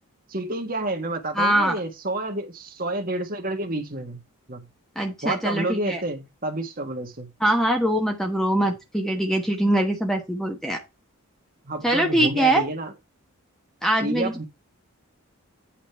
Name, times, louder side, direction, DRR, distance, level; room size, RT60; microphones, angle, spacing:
voice 1, 0.3-4.2 4.5-4.6 5.2-7.3 11.6-12.9 14.0-14.4, right 2 dB, 40° right, 1.5 m, -29 dB
voice 2, 1.3-1.8 4.9-6.0 7.4-10.8 11.8-12.6 13.8-14.4, right 1 dB, ahead, 1.2 m, -23 dB
8.7 x 4.1 x 5.6 m
head